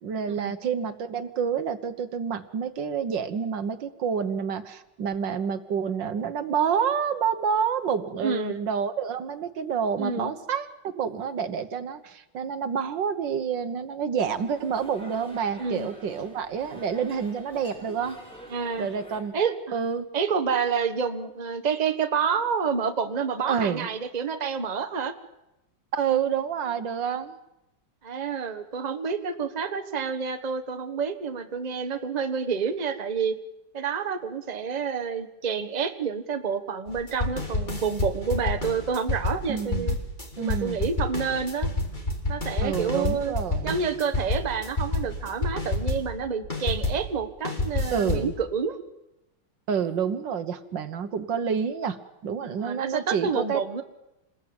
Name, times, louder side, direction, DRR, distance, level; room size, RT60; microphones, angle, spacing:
voice 1, 0.0-10.7 11.0-18.2 18.8-19.3 19.7-20.1 23.5-23.9 25.9-27.4 39.5-40.0 40.4-40.8 42.6-43.8 47.9-48.3 49.7-52.0 52.2-53.6, right 7 dB, 70° right, 11 dB, 1.8 m, -28 dB
voice 2, 8.2-8.5 10.0-10.3 15.6-15.9 18.5-18.9 19.3-19.6 20.1-25.1 28.0-33.3 33.7-40.0 40.4-41.7 42.3-43.3 43.6-48.8 52.6-53.8, right 6 dB, 25° right, 7 dB, 1.2 m, -28 dB
sound 1, 14.2-19.2, equal, 5° left, 6.1 m, -47 dB
sound 2, 36.9-47.1 47.4-48.3, left 2 dB, 25° left, 3.1 m, -29 dB
27.5 x 20.5 x 8.8 m, 0.96 s
omnidirectional pair, 2.1 m